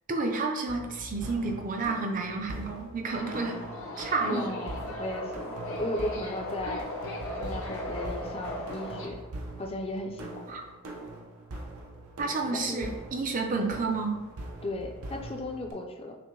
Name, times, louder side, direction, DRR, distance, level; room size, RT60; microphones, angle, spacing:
voice 1, 0.1-3.6 4.0-4.5 10.5-10.6 12.2-14.2, right 3 dB, 35° right, 3 dB, 0.5 m, -30 dB
sound 1, 0.7-15.7, right 1 dB, 85° right, 0.6 m, -42 dB
Subway metro underground, 3.1-9.1, left 1 dB, 70° left, 0.7 m, -37 dB
voice 2, 4.3-6.9 7.4-9.2 9.6-10.5 12.5-12.9 14.6-16.2, left 1 dB, 25° left, 3 dB, 0.4 m, -36 dB
5.9 x 2.1 x 3.1 m, 1.1 s
head